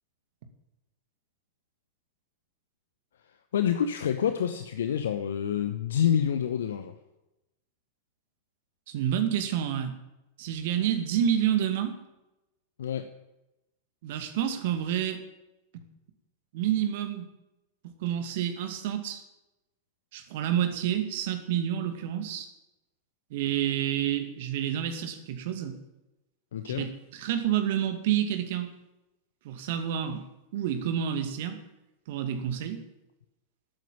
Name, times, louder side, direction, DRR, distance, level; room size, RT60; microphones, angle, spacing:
voice 1, 3.5-6.9 12.8-13.1 26.5-26.9, left 9 dB, 65° left, 9 dB, 0.9 m, -27 dB
voice 2, 8.9-10.0 10.4-12.0 14.0-15.2 16.5-17.3 18.0-19.2 20.1-22.5 23.3-25.8 26.7-28.7 29.4-30.2 30.5-31.6 32.1-32.8, right 10 dB, 50° right, 7 dB, 2.3 m, -29 dB
13.0 x 9.3 x 9.4 m, 0.94 s
figure-of-eight pair, 90°, 0 cm